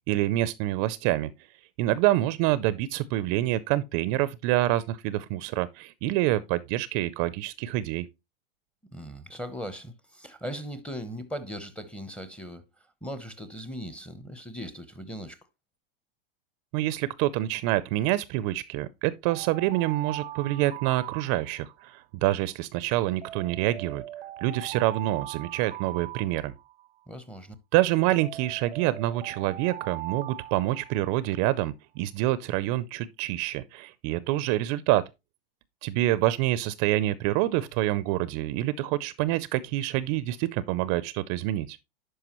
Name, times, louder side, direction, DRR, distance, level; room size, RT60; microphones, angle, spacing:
voice 1, 0.1-1.3 1.8-8.1 16.7-24.0 24.4-26.5 27.7-35.0 35.8-41.8, right 15 dB, 40° right, 0.5 m, -27 dB
voice 2, 8.9-12.6 13.0-15.4 27.1-27.5, equal, 5° left, 0.8 m, -38 dB
Alarm, 19.3-21.9 23.2-26.9 28.2-31.4, right 14 dB, 85° right, 0.5 m, -40 dB
11.0 x 4.8 x 3.0 m
hypercardioid pair, 130°, 29 cm